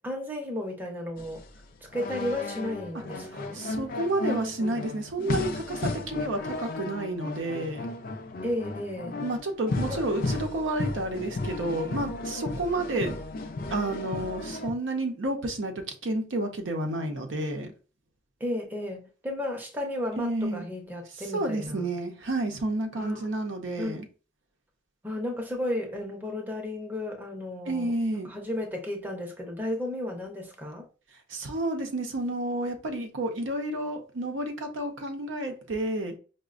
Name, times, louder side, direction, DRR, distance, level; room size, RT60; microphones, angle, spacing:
voice 1, 0.0-1.4 1.9-3.6 8.4-9.2 9.9-10.0 12.9-13.2 18.4-21.9 23.0-23.3 23.8-24.0 25.0-30.8, left 1 dB, 10° right, 0.6 m, -33 dB
sound 1, 1.2-14.7, left 3 dB, 50° left, 0.4 m, -34 dB
voice 2, 3.5-7.9 9.2-13.1 13.7-17.7 20.2-20.6 21.3-24.1 27.7-28.3 31.3-36.1, right 1 dB, 85° right, 0.6 m, -30 dB
4.8 x 2.1 x 2.4 m
head